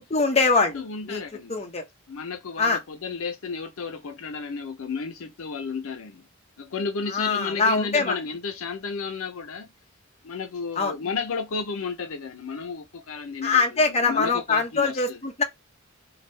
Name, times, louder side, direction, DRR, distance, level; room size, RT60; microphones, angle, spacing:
voice 1, 0.1-0.8 1.1-1.2 1.5-1.8 2.6-2.8 7.1-8.1 10.8-10.9 13.4-15.4, left 4 dB, 30° left, 0.7 m, -23 dB
voice 2, 0.7-1.7 2.1-6.2 6.6-9.7 10.2-15.2, left 4 dB, 70° left, 0.6 m, -32 dB
2.6 x 2.3 x 3.2 m
head